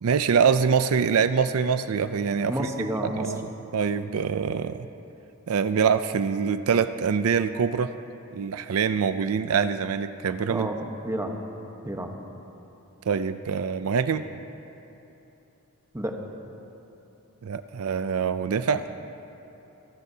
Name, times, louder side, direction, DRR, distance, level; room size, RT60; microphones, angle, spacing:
voice 1, 0.0-4.9 5.5-7.9 8.3-10.7 13.1-14.3 17.4-18.9, right 6 dB, 75° right, 11 dB, 0.4 m, -25 dB
voice 2, 2.5-3.3 10.5-11.4 11.8-12.1 15.9-16.3, right 1 dB, 15° right, 2 dB, 1.1 m, -30 dB
26.5 x 14.5 x 2.8 m, 2.9 s
head